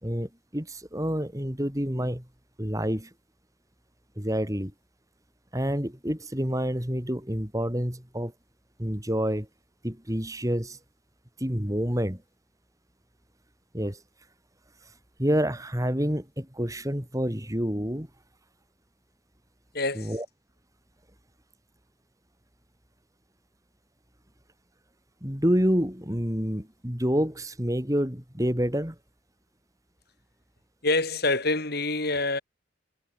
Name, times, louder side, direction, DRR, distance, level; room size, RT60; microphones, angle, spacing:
voice 1, 0.0-2.2 2.6-3.1 4.2-4.7 5.5-8.3 8.8-9.5 9.8-10.8 11.4-12.2 13.7-14.0 15.2-18.1 20.0-20.3 25.2-29.0, equal, 15° right, 3.6 m, -28 dB
voice 2, 19.7-20.2 30.8-32.4, left 2 dB, 50° left, 6.9 m, -26 dB
head